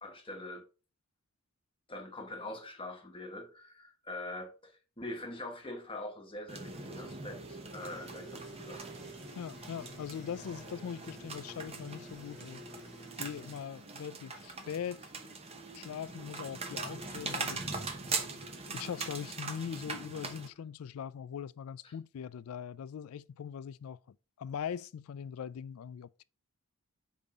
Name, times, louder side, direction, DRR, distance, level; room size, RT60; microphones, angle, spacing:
voice 1, 0.0-0.6 1.9-9.0 21.8-21.9, left 1 dB, 25° left, 1.2 m, -44 dB
sound 1, 6.5-20.5, right 4 dB, 25° right, 0.9 m, -41 dB
sound 2, 7.8-13.6, equal, ahead, 2.0 m, -55 dB
voice 2, 9.3-12.6 13.2-15.1 15.7-17.6 18.7-24.0 24.4-26.2, left 8 dB, 75° left, 0.3 m, -41 dB
5.3 x 5.1 x 4.1 m
head